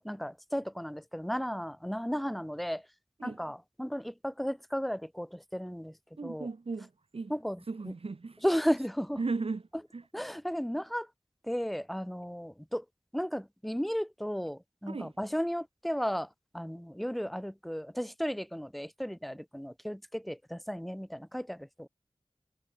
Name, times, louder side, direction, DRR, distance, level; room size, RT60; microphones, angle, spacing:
voice 1, 0.0-2.8 3.2-6.0 6.2-6.5 7.3-7.6 7.9-8.0 8.4-9.2 10.1-11.1 11.4-12.8 13.1-21.9, equal, ahead, 0.5 m, -34 dB
voice 2, 6.2-7.4 7.6-8.4 9.2-10.0 14.9-15.1, right 4 dB, 75° right, 0.9 m, -36 dB
wide cardioid pair, 45°, 10 cm